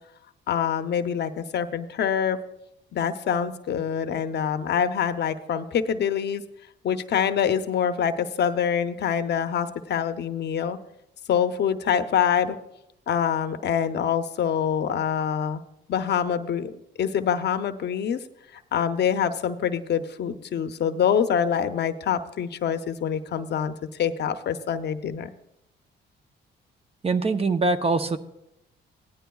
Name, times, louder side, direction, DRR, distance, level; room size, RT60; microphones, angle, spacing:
voice 1, 0.5-2.4 2.9-6.4 6.8-10.8 11.3-12.6 13.1-15.6 15.9-16.7 17.0-18.2 18.7-23.7 24.0-25.3, left 8 dB, 60° left, 9 dB, 0.7 m, -25 dB
voice 2, 27.0-28.2, right 3 dB, 30° right, 9 dB, 0.7 m, -23 dB
16.5 x 10.5 x 2.3 m, 0.85 s
cardioid pair, 90°, 20 cm